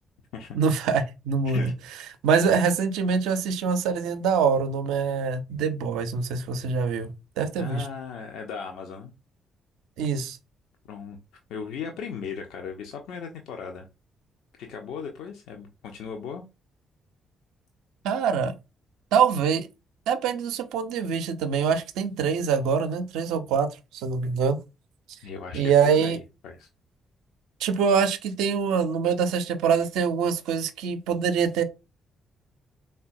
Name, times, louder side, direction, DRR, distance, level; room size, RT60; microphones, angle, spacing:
voice 1, 0.5-1.7 2.2-7.9 10.0-10.4 18.0-18.5 19.1-19.7 20.1-23.7 23.9-24.6 25.5-26.2 27.6-31.6, right 6 dB, 65° right, 0.4 m, -24 dB
voice 2, 7.6-9.1 10.9-11.2 11.5-13.9 14.6-16.4 25.2-26.7, left 6 dB, 65° left, 0.4 m, -37 dB
3.7 x 2.1 x 2.5 m
figure-of-eight pair, 40°, 0 cm